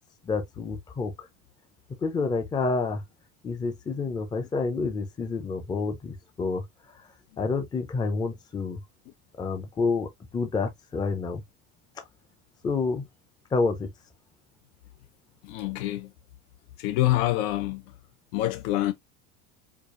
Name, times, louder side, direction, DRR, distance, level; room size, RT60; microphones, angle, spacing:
voice 1, 0.2-1.3 2.0-3.0 3.4-6.6 7.4-8.8 9.4-11.4 12.6-13.1 13.5-13.9, left 4 dB, 10° left, 0.4 m, -28 dB
voice 2, 15.4-16.1 16.8-17.8 18.3-18.9, left 15 dB, 85° left, 0.7 m, -26 dB
4.6 x 2.4 x 2.5 m
cardioid pair, 160°, 40 cm